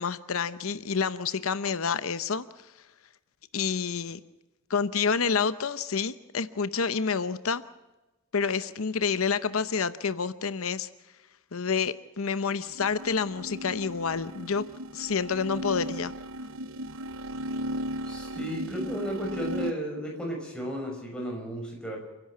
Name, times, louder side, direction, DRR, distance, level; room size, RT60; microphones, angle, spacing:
voice 1, 0.0-2.4 3.5-4.2 4.7-7.6 8.3-10.9 11.5-14.6 14.9-16.1, left 5 dB, 85° left, 13 dB, 0.8 m, -28 dB
sound 1, 12.7-19.7, equal, 75° right, 0.8 m, -36 dB
voice 2, 18.0-22.0, equal, 5° left, -1 dB, 5.8 m, -34 dB
29.5 x 11.0 x 8.5 m, 1.1 s
head